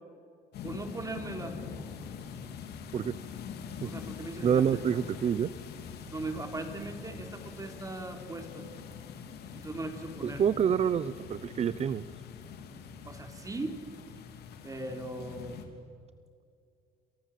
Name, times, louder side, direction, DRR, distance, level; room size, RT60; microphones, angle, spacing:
sound 1, 0.5-15.6, left 6 dB, 75° left, 3.3 m, -44 dB
voice 1, 0.6-1.6 3.8-4.9 6.1-8.7 9.5-10.4 13.1-13.8 14.6-15.6, right 2 dB, 20° right, 5 dB, 4.0 m, -39 dB
voice 2, 4.4-5.5 10.2-12.1, right 8 dB, 40° right, 16 dB, 0.7 m, -27 dB
29.0 x 26.5 x 7.6 m, 2.3 s
cardioid pair, 110°, 17 cm